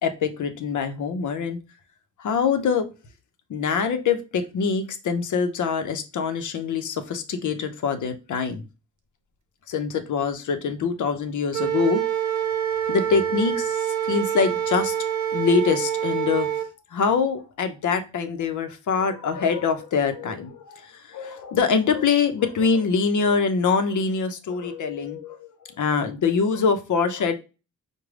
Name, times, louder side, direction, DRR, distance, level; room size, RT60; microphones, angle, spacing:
voice 1, 0.0-1.6 2.2-2.9 3.5-8.6 9.7-12.0 12.9-14.9 15.3-16.5 16.9-27.3, left 5 dB, 80° left, 7 dB, 0.7 m, -24 dB
Wind instrument woodwind instrument, 11.5-16.7, right 10 dB, 75° right, 0.7 m, -26 dB
4.9 x 2.2 x 3.2 m, 0.30 s
wide cardioid pair, 100°, 30 cm